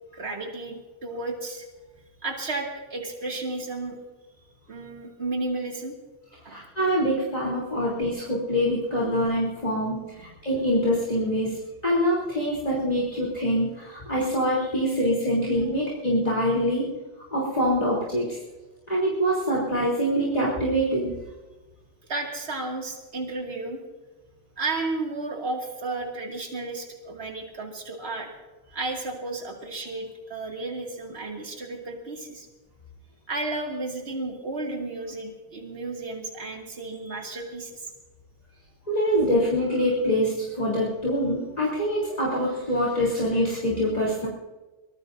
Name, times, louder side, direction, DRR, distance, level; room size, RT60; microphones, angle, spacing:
voice 1, 0.1-1.6 2.2-4.0 4.7-5.9 6.4-6.6 22.1-23.8 24.6-28.3 28.7-32.5 33.3-37.9, right 2 dB, 60° right, 0 dB, 2.6 m, -33 dB
voice 2, 6.5-16.9 17.3-18.4 18.9-21.2 38.9-44.3, equal, 35° left, -6 dB, 3.6 m, -25 dB
24.5 x 19.0 x 2.7 m, 1.2 s
omnidirectional pair, 1.2 m